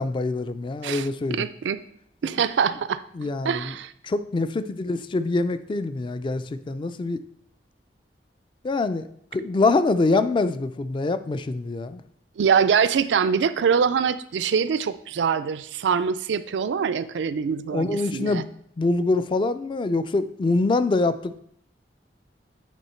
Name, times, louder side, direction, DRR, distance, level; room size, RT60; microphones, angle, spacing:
voice 1, 0.0-1.5 3.1-3.7 4.0-7.2 8.6-9.1 9.3-12.0 17.7-18.5 18.8-21.4, left 3 dB, 30° left, 12 dB, 0.3 m, -24 dB
voice 2, 0.8-1.8 2.2-3.9 12.4-18.4, right 6 dB, 90° right, 13 dB, 0.4 m, -24 dB
8.3 x 3.8 x 4.3 m, 0.69 s
head